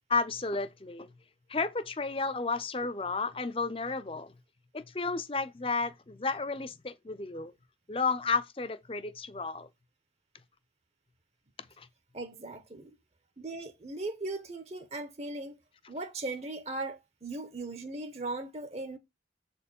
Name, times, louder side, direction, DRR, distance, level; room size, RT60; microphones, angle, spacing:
voice 1, 0.1-1.1 1.5-4.3 4.7-7.5 7.9-9.7 11.8-11.9, left 4 dB, 30° left, 0.6 m, -32 dB
voice 2, 12.1-12.9 13.4-15.6 15.9-19.0, right 2 dB, 35° right, 0.9 m, -38 dB
7.7 x 4.4 x 5.4 m
head